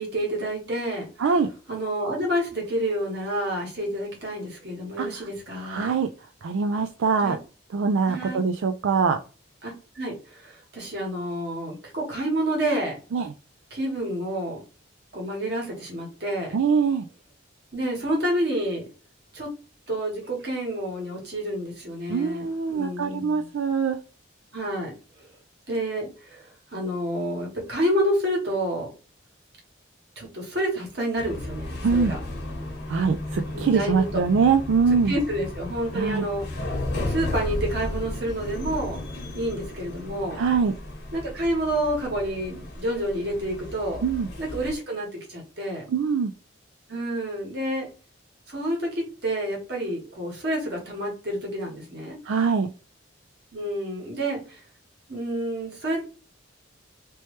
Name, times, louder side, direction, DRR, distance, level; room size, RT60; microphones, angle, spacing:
voice 1, 0.0-1.1 1.7-6.0 7.2-7.4 8.1-8.4 9.6-13.0 13.7-14.6 15.1-16.5 17.7-18.8 19.3-19.5 19.9-23.5 24.5-24.9 25.7-26.4 26.7-28.9 30.2-32.2 33.5-34.2 35.1-36.4 37.1-39.0 39.3-40.4 41.1-44.0 44.4-45.8 46.9-47.9 48.5-52.2 53.5-54.6 55.1-56.0, right 1 dB, 55° right, -1 dB, 1.5 m, -29 dB
voice 2, 5.6-6.1 6.4-7.4 7.7-9.2 13.1-13.3 16.5-17.1 22.1-24.0 31.8-32.2 32.9-35.1 35.9-36.2 40.3-40.7 44.0-44.3 45.9-46.3 52.3-52.7, right 5 dB, 80° right, 6 dB, 0.4 m, -23 dB
sound 1, 31.2-44.7, left 1 dB, 55° left, 1.0 m, -34 dB
3.2 x 3.0 x 3.1 m, 0.35 s
head